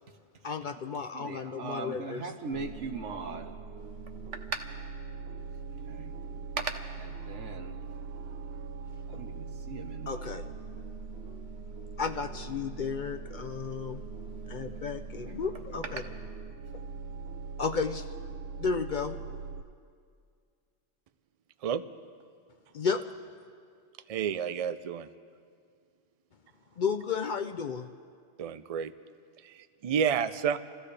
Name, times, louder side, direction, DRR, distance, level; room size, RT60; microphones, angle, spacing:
voice 1, 0.4-2.3 10.1-10.5 12.0-14.0 14.5-16.0 17.6-18.1 18.6-19.2 22.7-23.0 26.8-27.9, left 5 dB, 55° left, 8 dB, 0.6 m, -33 dB
voice 2, 1.1-3.5 5.8-6.2 6.6-6.7 7.0-7.8 9.1-10.3 14.4-14.8 15.2-16.2, right 4 dB, 85° right, 6 dB, 1.4 m, -40 dB
sound 1, 2.5-19.6, right 4 dB, 65° right, 0.8 m, -41 dB
voice 3, 24.1-25.1 28.4-28.9 29.4-30.6, right 7 dB, 45° right, 13 dB, 0.5 m, -30 dB
28.0 x 15.0 x 3.3 m, 2.2 s
omnidirectional pair, 1.2 m